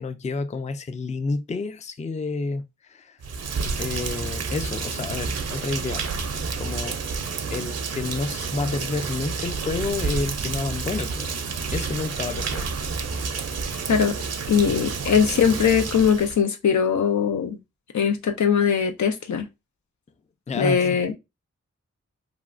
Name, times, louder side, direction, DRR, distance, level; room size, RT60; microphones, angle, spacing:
voice 1, 0.0-3.2 3.8-6.1 6.6-7.0 7.5-11.4 11.7-12.7 14.7-14.8 20.5-20.9, left 3 dB, 25° left, 0.4 m, -30 dB
Rain, 3.2-16.4, right 5 dB, 60° right, 0.5 m, -30 dB
voice 2, 14.5-17.6 17.9-19.5 20.5-21.2, left 7 dB, 75° left, 0.6 m, -21 dB
2.9 x 2.3 x 2.5 m
cardioid pair, 45°, 29 cm